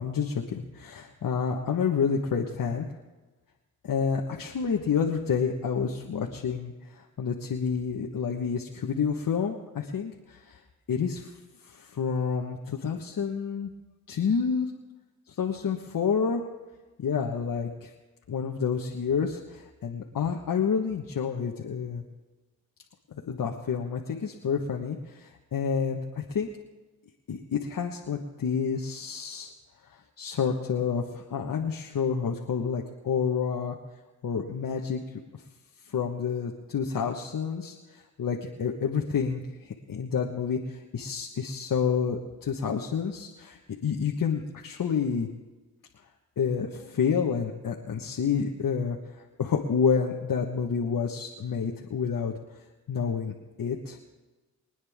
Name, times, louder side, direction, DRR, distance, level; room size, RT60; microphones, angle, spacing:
voice 1, 0.0-2.9 3.8-6.7 7.2-10.6 10.9-11.3 11.7-13.7 14.1-14.7 15.4-16.4 17.0-17.9 18.3-22.0 23.3-26.5 27.3-29.5 30.2-33.7 34.2-35.0 35.9-37.7 38.2-45.3 46.4-49.0 49.4-52.3 52.9-54.0, left 6 dB, 65° left, 0 dB, 1.5 m, -29 dB
24.5 x 9.5 x 3.6 m, 1.2 s
supercardioid pair, 50°, 36 cm